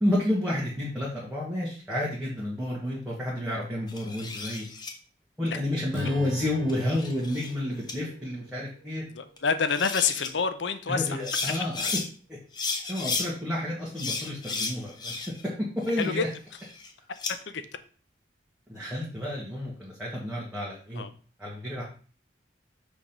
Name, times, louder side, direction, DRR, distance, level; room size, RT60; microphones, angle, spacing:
voice 1, 0.0-4.6 5.4-9.0 10.9-11.9 12.3-12.4 12.9-15.1 15.4-16.3 18.7-21.0 21.4-21.8, left 1 dB, 5° right, -7 dB, 1.6 m, -30 dB
sound 1, 3.9-4.9 6.5-7.5 7.9-8.0 9.4-9.5 9.7-10.3 11.1-12.1 12.5-13.3 14.0-15.5 15.8-17.3, left 4 dB, 25° left, 0.8 m, -33 dB
Strum, 5.9-10.3, right 1 dB, 80° right, 1.3 m, -42 dB
voice 2, 9.2-11.2 16.0-16.2 17.3-17.6 21.0-21.1, left 5 dB, 80° left, 11 dB, 0.6 m, -27 dB
6.3 x 3.5 x 5.9 m, 0.40 s
head